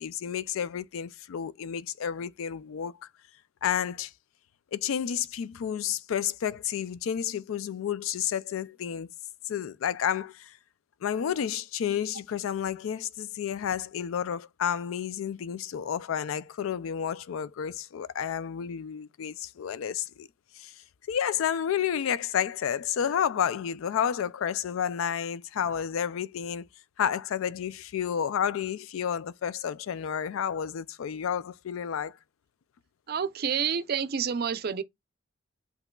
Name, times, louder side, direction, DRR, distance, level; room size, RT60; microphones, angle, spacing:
voice 1, 0.0-2.9 3.6-4.1 4.7-9.1 9.5-10.6 11.0-20.3 20.6-20.7 21.1-26.7 27.0-32.2, left 8 dB, 85° left, 0.4 m, -31 dB
voice 2, 33.1-34.8, right 7 dB, 50° right, 0.5 m, -29 dB
8.0 x 2.8 x 2.3 m
head